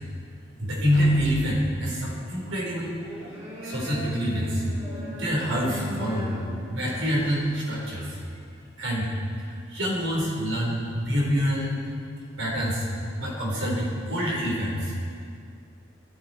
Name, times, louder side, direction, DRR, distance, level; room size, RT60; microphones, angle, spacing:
voice 1, 0.6-2.9 3.6-4.6 5.2-6.3 6.7-8.1 8.8-9.1 9.4-11.8 12.4-12.8 13.2-14.9, equal, 90° right, -3 dB, 4.6 m, -26 dB
sound 1, 2.9-8.2, right 1 dB, 30° right, 2.6 m, -37 dB
17.5 x 13.5 x 4.6 m, 2.3 s
head